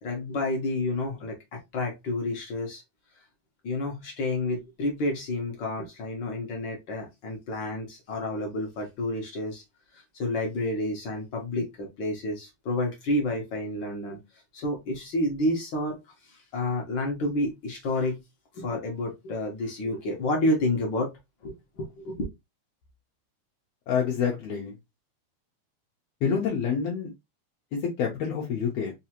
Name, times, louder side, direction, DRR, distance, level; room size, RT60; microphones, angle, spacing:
voice 1, 0.0-2.8 3.6-9.6 9.9-14.2 14.5-16.0 16.2-18.2 18.5-21.1 21.4-22.3, left 1 dB, 55° left, 1.4 m, -30 dB
voice 2, 23.9-24.8 26.2-27.1 27.7-28.9, left 7 dB, 70° left, 1.8 m, -27 dB
4.8 x 2.7 x 2.8 m
omnidirectional pair, 3.3 m